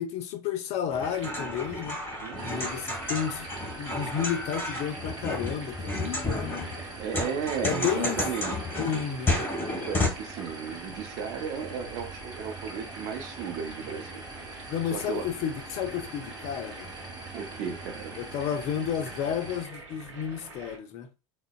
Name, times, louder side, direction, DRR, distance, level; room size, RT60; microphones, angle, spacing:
voice 1, 0.0-2.0 2.4-3.5 3.8-6.7 7.6-8.2 8.8-9.4 14.7-16.9 18.2-21.1, left 8 dB, 45° left, 0.5 m, -32 dB
sound 1, 0.9-10.1, left 2 dB, 15° left, 1.4 m, -32 dB
sound 2, 0.9-20.8, right 3 dB, 75° right, 0.7 m, -46 dB
voice 2, 2.2-2.7 7.0-8.8 9.7-15.3 17.3-18.2, right 7 dB, 50° right, 0.5 m, -35 dB
sound 3, 2.4-19.7, right 2 dB, 25° right, 0.9 m, -43 dB
3.8 x 2.0 x 2.3 m
figure-of-eight pair, 75°, 16 cm